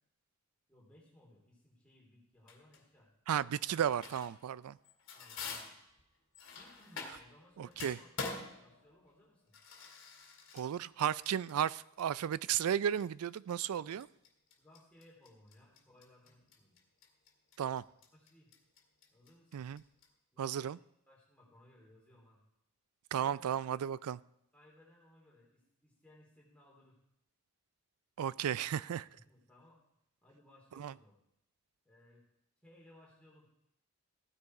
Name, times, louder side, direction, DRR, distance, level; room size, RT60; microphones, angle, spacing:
voice 1, 0.7-3.1 5.1-5.7 6.5-8.1 8.6-9.6 13.7-14.0 14.6-16.8 18.1-18.5 19.1-19.7 20.3-20.7 21.1-22.4 23.1-23.8 24.5-27.0 29.2-29.8 30.2-31.2 31.9-32.2 32.6-33.5, left 1 dB, 5° left, -4 dB, 3.4 m, -62 dB
sound 1, 2.5-2.8 3.5-4.4 4.8-7.4 7.7-20.1, left 4 dB, 60° left, 2.1 m, -47 dB
voice 2, 3.3-4.8 7.6-8.0 10.5-14.0 17.6-17.8 19.5-19.8 20.4-20.8 23.1-24.2 28.2-29.1 30.8-30.9, right 9 dB, 85° right, 20 dB, 0.3 m, -34 dB
15.5 x 9.6 x 4.8 m, 0.78 s
head